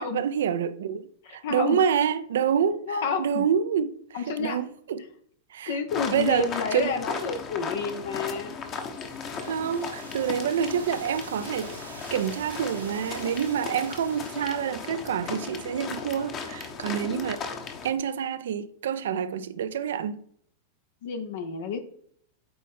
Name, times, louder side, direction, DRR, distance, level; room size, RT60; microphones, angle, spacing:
voice 1, 0.0-5.1 5.5-5.8 6.1-7.0 9.4-11.7 12.1-17.4 17.8-20.2, right 8 dB, 60° right, 0.4 m, -27 dB
voice 2, 1.2-1.8 2.9-3.5 4.1-4.6 5.7-8.6 21.0-21.8, left 5 dB, 55° left, 0.7 m, -30 dB
sound 1, 5.9-17.9, left 5 dB, 30° left, 1.0 m, -36 dB
sound 2, 8.7-15.3, right 3 dB, 80° right, 1.3 m, -46 dB
8.7 x 4.2 x 3.6 m
figure-of-eight pair, 90°, 0 cm